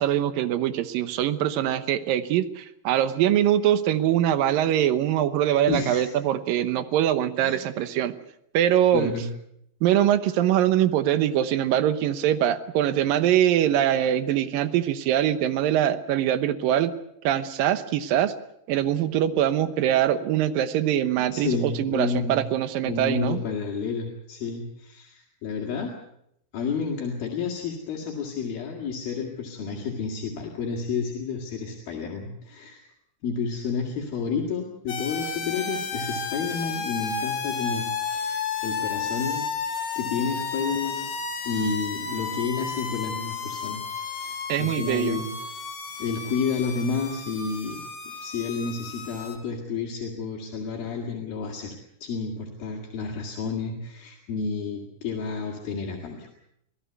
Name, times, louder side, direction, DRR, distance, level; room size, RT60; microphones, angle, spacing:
voice 1, 0.0-8.2 8.5-9.1 9.8-16.9 17.2-18.3 18.7-23.4 44.5-45.2, right 11 dB, 75° right, 13 dB, 2.6 m, -23 dB
voice 2, 5.7-6.1 7.4-7.6 8.9-9.3 21.2-22.4 22.8-26.0 26.5-32.9 33.2-39.5 40.0-41.1 41.5-43.9 44.2-45.3 46.0-56.3, left 5 dB, 75° left, -1 dB, 4.0 m, -30 dB
sound 1, 34.9-49.4, left 5 dB, 55° left, 3.9 m, -32 dB
26.0 x 16.5 x 8.1 m, 0.75 s
omnidirectional pair, 4.3 m